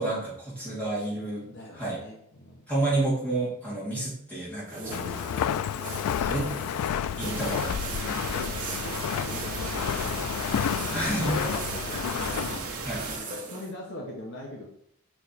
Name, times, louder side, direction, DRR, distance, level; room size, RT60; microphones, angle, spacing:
voice 1, 0.0-1.5 1.7-2.0 2.7-5.2 6.2-6.9 7.2-7.7 8.0-8.5 10.9-11.3 12.8-13.1, right 2 dB, 5° left, -7 dB, 2.6 m, -30 dB
voice 2, 1.4-2.6 4.7-5.6 6.1-6.3 7.2-7.5 8.0-10.4 11.2-11.6 11.8-12.8 13.1-14.6, left 1 dB, 50° left, -1 dB, 1.0 m, -42 dB
sound 1, 4.7-13.7, right 3 dB, 35° right, 1.0 m, -40 dB
Walk footsteps, 4.9-12.6, left 9 dB, 85° left, 0.3 m, -30 dB
sound 2, 7.2-13.2, right 3 dB, 75° right, 1.1 m, -36 dB
5.8 x 4.6 x 4.2 m, 0.70 s
head